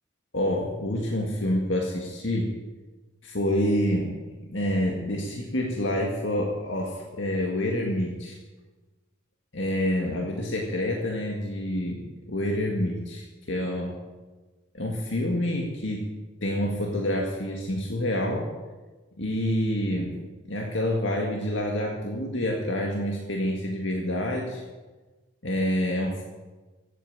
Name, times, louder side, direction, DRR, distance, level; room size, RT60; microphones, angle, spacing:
voice 1, 0.3-2.5 3.2-4.1 4.5-8.4 9.5-13.9 14.7-16.1 16.4-18.5 19.2-20.2 20.5-24.6 25.4-26.2, left 1 dB, 70° left, 0 dB, 2.0 m, -27 dB
15.5 x 9.1 x 8.8 m, 1.2 s
head